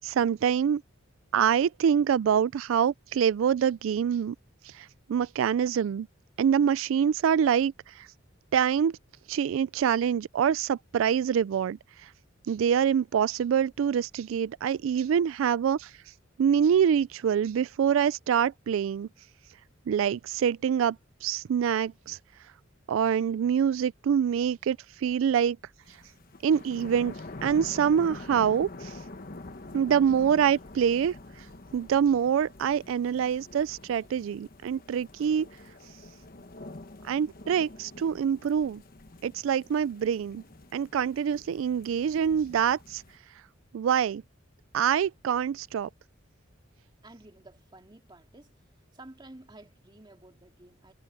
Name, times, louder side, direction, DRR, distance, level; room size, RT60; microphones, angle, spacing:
voice 1, 0.0-0.8 1.3-4.3 4.6-6.1 6.4-8.1 8.5-9.0 9.3-12.1 12.5-15.9 16.4-19.1 19.9-21.0 21.2-22.2 22.9-25.6 26.4-27.1 27.4-29.0 29.7-31.5 31.7-35.5 37.0-38.8 39.2-40.4 40.7-43.0 43.7-44.2 44.7-45.9, right 8 dB, 90° right, 0.3 m, -25 dB
sound 1, 25.9-43.2, left 2 dB, 50° left, 1.2 m, -46 dB
voice 2, 47.0-48.5 48.9-50.9, right 2 dB, 25° right, 2.2 m, -51 dB
head